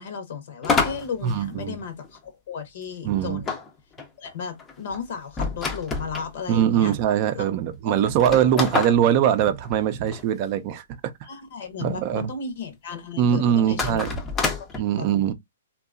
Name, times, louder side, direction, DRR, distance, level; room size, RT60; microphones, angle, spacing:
voice 1, 0.0-3.5 4.2-7.0 7.3-7.4 7.8-8.0 11.3-14.0 14.4-15.1, left 6 dB, 60° left, 0.8 m, -35 dB
sound 1, 0.6-2.2 3.5-6.3 7.0-7.1 7.3-7.4 8.1-10.2 13.7-14.8, left 4 dB, 15° left, 0.5 m, -28 dB
voice 2, 1.2-1.8 3.0-3.4 6.5-10.8 11.8-12.3 13.2-14.2 14.8-15.3, right 9 dB, 40° right, 0.5 m, -22 dB
2.8 x 2.3 x 2.3 m
hypercardioid pair, 140°, 0 cm